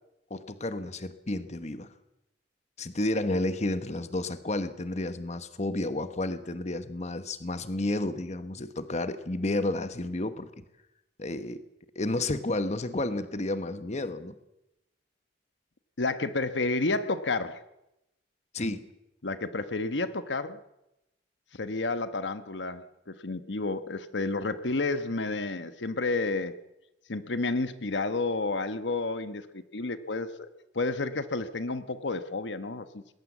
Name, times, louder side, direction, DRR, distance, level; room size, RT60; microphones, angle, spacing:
voice 1, 0.3-1.9 2.8-10.5 11.2-11.6 11.9-14.3 18.5-18.9, left 2 dB, 40° left, 11 dB, 1.1 m, -31 dB
voice 2, 16.0-17.6 18.6-18.7 19.2-20.6 21.5-26.6 27.1-30.5 30.7-33.1, left 3 dB, 80° left, 11 dB, 1.2 m, -31 dB
20.5 x 17.5 x 7.3 m, 0.89 s
head